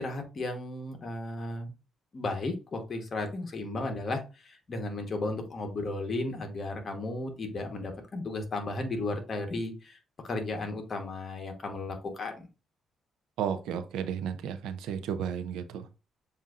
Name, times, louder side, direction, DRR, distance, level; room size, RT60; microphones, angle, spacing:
voice 1, 0.0-1.7 2.1-10.0 10.3-12.5, left 2 dB, 40° left, 4 dB, 1.2 m, -34 dB
voice 2, 13.4-16.0, right 8 dB, 90° right, 9 dB, 0.5 m, -33 dB
7.1 x 2.6 x 2.5 m, 0.31 s
cardioid pair, 90°, 0 cm